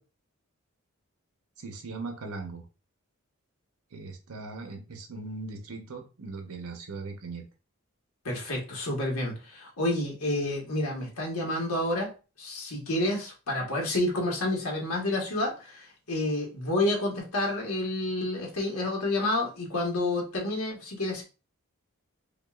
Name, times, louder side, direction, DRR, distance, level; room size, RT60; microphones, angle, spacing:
voice 1, 1.6-2.6 3.9-7.5, right 3 dB, 85° right, 4 dB, 0.9 m, -39 dB
voice 2, 8.2-12.1 12.4-21.2, left 1 dB, 90° left, -1 dB, 1.3 m, -29 dB
5.2 x 2.4 x 2.4 m, 0.32 s
head